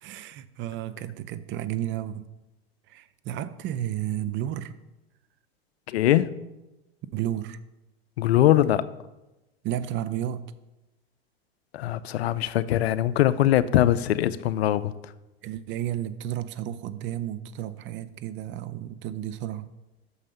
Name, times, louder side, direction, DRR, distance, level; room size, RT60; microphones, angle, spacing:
voice 1, 0.0-2.3 2.9-4.7 7.1-7.6 9.6-10.4 15.4-19.7, right 12 dB, 40° right, 14 dB, 0.5 m, -32 dB
voice 2, 5.9-6.3 8.2-8.9 11.7-15.1, left 12 dB, 85° left, 15 dB, 0.5 m, -22 dB
6.4 x 5.4 x 6.7 m, 1.0 s
hypercardioid pair, 105°, 31 cm